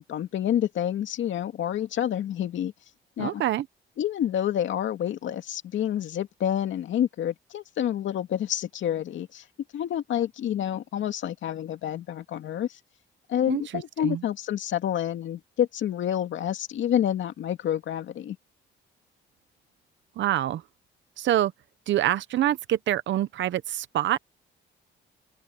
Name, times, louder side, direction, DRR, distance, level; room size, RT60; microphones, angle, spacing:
voice 1, 0.0-2.7 3.2-3.4 4.0-9.4 9.7-12.8 13.3-18.4, left 10 dB, 70° left, 2.4 m, -28 dB
voice 2, 3.2-3.6 13.5-13.6 14.0-14.2 20.2-20.6 21.2-21.5 21.9-24.2, right 12 dB, 70° right, 0.8 m, -25 dB
open air
cardioid pair, 90°, 20 cm